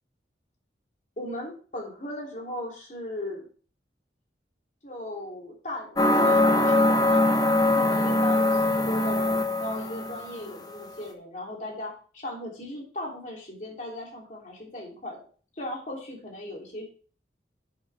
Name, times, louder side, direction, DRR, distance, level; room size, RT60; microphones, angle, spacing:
voice 1, 1.2-3.5 4.8-7.3 7.6-15.2 15.5-16.9, left 1 dB, 40° left, -1 dB, 3.2 m, -37 dB
sound 1, 6.0-10.3, left 1 dB, 20° left, 0.8 m, -22 dB
8.7 x 8.1 x 3.5 m, 0.41 s
head